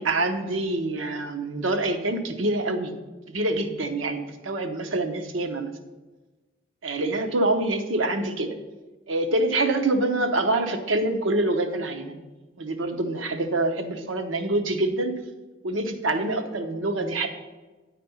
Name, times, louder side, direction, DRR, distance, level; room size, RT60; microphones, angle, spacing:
voice 1, 0.0-2.9 3.3-5.7 6.8-8.5 9.1-12.2 12.6-15.2 15.6-17.3, right 2 dB, 80° right, 5 dB, 0.9 m, -26 dB
9.4 x 4.2 x 7.0 m, 1.2 s
head